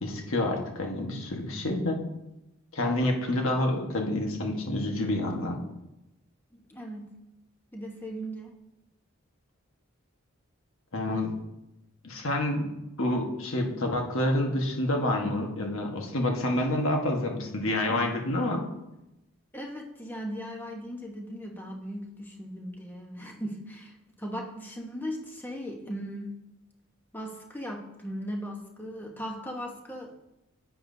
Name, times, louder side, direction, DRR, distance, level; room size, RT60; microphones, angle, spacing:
voice 1, 0.0-2.0 2.7-5.6 10.9-11.4 12.0-12.7 13.0-18.6, left 1 dB, 75° left, 2 dB, 1.4 m, -28 dB
voice 2, 6.5-7.1 7.7-8.5 19.5-26.4 27.1-30.1, equal, 10° left, 0 dB, 1.1 m, -38 dB
10.5 x 8.7 x 2.7 m, 0.92 s
head